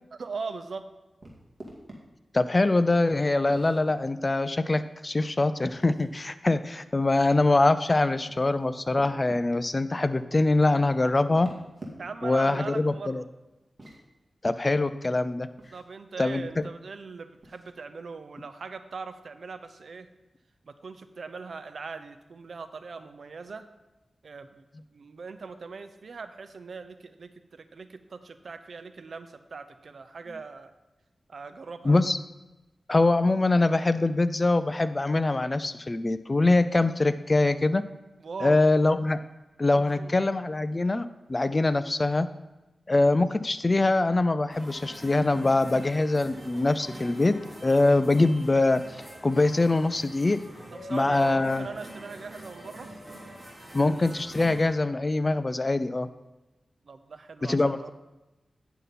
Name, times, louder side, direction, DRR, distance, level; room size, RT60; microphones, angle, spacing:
voice 1, 0.1-0.9 12.0-13.3 15.7-20.1 20.6-23.7 24.2-24.6 24.9-30.7 31.3-32.0 38.2-38.6 39.8-40.1 50.8-52.9 56.8-57.9, right 4 dB, 75° right, 10 dB, 0.6 m, -40 dB
sound 1, 1.2-2.0 3.5-4.0 5.6-6.2 8.1-9.4 11.2-12.3 13.6-14.0 15.6-15.8 17.4-17.7, right 1 dB, 40° right, 2.2 m, -46 dB
voice 2, 2.3-11.5 12.2-13.2 14.4-15.5 16.2-16.4 31.8-32.2 32.9-37.8 38.4-39.2 39.6-42.3 42.9-47.3 47.6-50.4 50.9-51.7 53.7-56.1 57.4-57.9, left 2 dB, 35° left, 13 dB, 0.5 m, -23 dB
sound 2, 44.5-54.6, right 1 dB, 20° right, 3.4 m, -44 dB
9.2 x 6.8 x 4.2 m, 1.0 s
cardioid pair, 60°, 0 cm